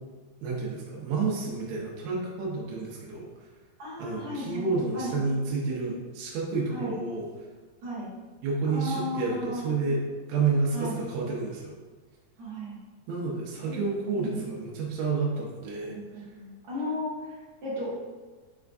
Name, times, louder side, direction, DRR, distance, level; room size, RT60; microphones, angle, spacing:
voice 1, 0.4-3.3 4.0-7.3 8.4-10.0 10.3-11.7 13.1-16.3, right 4 dB, 85° right, -3 dB, 2.7 m, -30 dB
voice 2, 3.8-5.1 6.7-6.9 7.8-8.1 8.7-9.7 10.7-11.0 12.4-12.8 13.7-13.8 14.1-14.4 15.8-17.9, left 1 dB, 50° right, -9 dB, 1.8 m, -35 dB
6.2 x 3.4 x 2.4 m, 1.3 s
omnidirectional pair, 4.4 m